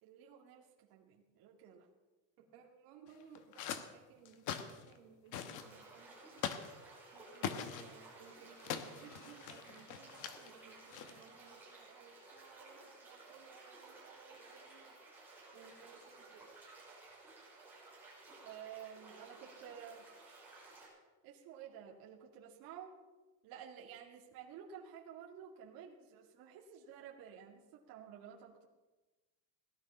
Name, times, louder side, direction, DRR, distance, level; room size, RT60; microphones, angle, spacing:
voice 1, 0.0-1.9 18.4-20.0 21.2-22.9 23.4-28.7, right 8 dB, 45° right, -2 dB, 2.6 m, -52 dB
voice 2, 2.4-6.5 7.1-16.5, right 6 dB, 75° right, 1 dB, 2.3 m, -60 dB
sound 1, 3.1-3.9 4.2-5.0 5.3-5.7 6.4-6.7 7.3-7.9 8.6-10.5 10.9-11.3, left 8 dB, 40° left, 1.0 m, -42 dB
sound 2, 5.6-20.9, right 3 dB, 5° right, 5.5 m, -56 dB
17.5 x 11.5 x 5.7 m, 1.2 s
cardioid pair, 175°, 47 cm